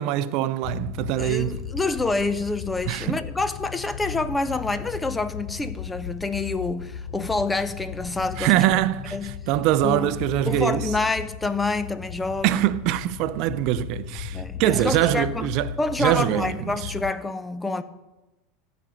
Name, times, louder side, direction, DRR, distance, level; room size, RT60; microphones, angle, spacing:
voice 1, 0.0-1.6 2.9-3.2 8.4-10.9 12.4-15.7 16.0-16.9, right 14 dB, 60° right, 0.6 m, -23 dB
sound 1, 0.6-17.1, left 8 dB, 60° left, 0.6 m, -36 dB
voice 2, 1.2-8.8 9.1-9.3 9.8-10.1 10.5-12.6 14.3-15.5 15.8-17.8, left 3 dB, 10° left, 0.8 m, -27 dB
14.5 x 5.2 x 7.7 m
supercardioid pair, 110°, 0 cm